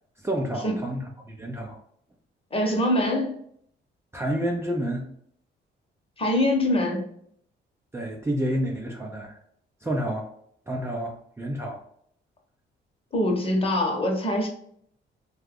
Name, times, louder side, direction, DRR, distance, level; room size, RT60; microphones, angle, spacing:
voice 1, 0.2-1.8 4.1-5.0 7.9-9.4 9.8-10.3 10.7-11.8, right 1 dB, 15° right, 0 dB, 0.5 m, -29 dB
voice 2, 2.5-3.3 6.2-7.1 13.1-14.5, left 1 dB, 30° left, 1 dB, 0.9 m, -24 dB
2.8 x 2.3 x 3.5 m, 0.65 s
cardioid pair, 90°, 20 cm